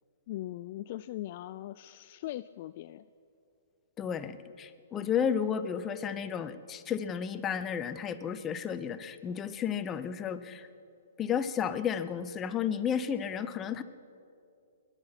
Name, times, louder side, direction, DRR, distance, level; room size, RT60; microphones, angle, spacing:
voice 1, 0.3-3.1, left 14 dB, 45° left, 13 dB, 0.3 m, -40 dB
voice 2, 4.0-10.7 11.2-13.8, left 8 dB, 20° left, 11 dB, 0.7 m, -32 dB
21.5 x 10.5 x 5.9 m, 2.5 s
hypercardioid pair, 140°, 0 cm